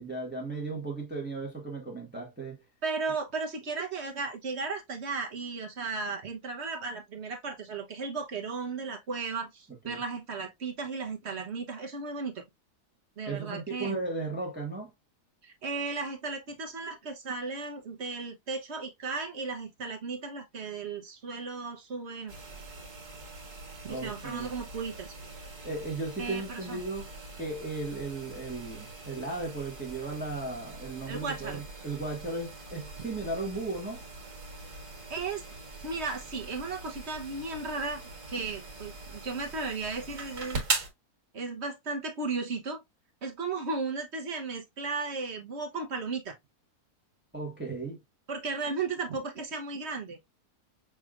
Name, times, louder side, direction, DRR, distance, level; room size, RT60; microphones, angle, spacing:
voice 1, 0.0-2.6 9.8-10.0 13.3-14.9 23.9-24.5 25.6-27.1 27.4-34.0 47.3-48.0, right 3 dB, 5° right, 1.2 m, -36 dB
voice 2, 2.8-12.4 13.2-13.9 15.4-22.4 23.8-25.1 26.2-26.8 31.1-31.6 33.0-33.1 35.1-35.4 35.8-40.6 41.3-42.8 43.2-46.3 48.3-50.2, right 4 dB, 50° right, 1.1 m, -35 dB
sound 1, 22.3-40.9, right 3 dB, 75° right, 2.0 m, -41 dB
6.1 x 3.2 x 2.4 m
omnidirectional pair, 1.7 m